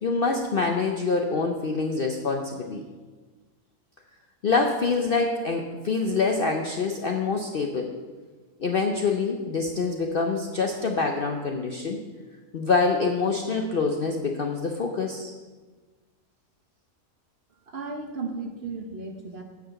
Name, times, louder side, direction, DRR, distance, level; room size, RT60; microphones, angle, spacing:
voice 1, 0.0-2.8 4.4-7.9 8.6-12.0 12.5-15.3, left 4 dB, 55° left, 2 dB, 0.6 m, -25 dB
voice 2, 17.7-19.4, right 3 dB, 45° right, 3 dB, 1.0 m, -35 dB
9.2 x 5.0 x 6.5 m, 1.3 s
omnidirectional pair, 1.6 m